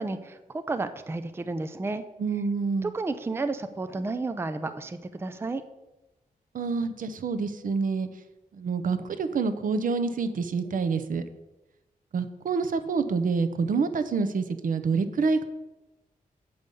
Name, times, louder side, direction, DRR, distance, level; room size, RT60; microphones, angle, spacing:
voice 1, 0.0-2.0 2.8-5.6, right 3 dB, 15° right, 10 dB, 0.4 m, -32 dB
voice 2, 2.2-2.9 6.5-8.1 8.6-11.2 12.1-15.4, right 4 dB, 70° right, 10 dB, 0.7 m, -27 dB
7.8 x 5.4 x 6.8 m, 1.0 s
wide cardioid pair, 140°, 15 cm